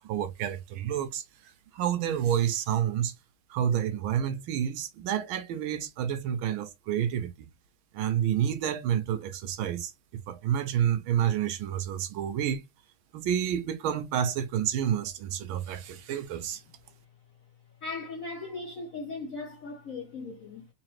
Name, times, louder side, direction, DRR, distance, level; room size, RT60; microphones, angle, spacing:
voice 1, 0.0-1.2 1.7-3.1 3.5-7.5 7.9-12.6 13.1-16.6, right 9 dB, 80° right, 1.4 m, -29 dB
voice 2, 17.8-20.7, left 3 dB, 75° left, 0.7 m, -38 dB
3.8 x 2.9 x 3.1 m
omnidirectional pair, 2.4 m